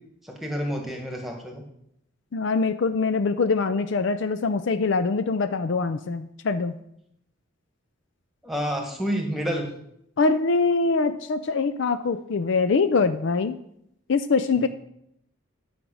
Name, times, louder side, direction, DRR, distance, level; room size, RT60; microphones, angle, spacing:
voice 1, 0.2-1.6 8.4-9.7 14.5-14.7, equal, ahead, 1 dB, 1.6 m, -29 dB
voice 2, 2.3-6.7 10.2-13.6 14.1-14.7, left 4 dB, 60° left, 10 dB, 0.4 m, -23 dB
11.0 x 5.2 x 6.2 m, 0.76 s
head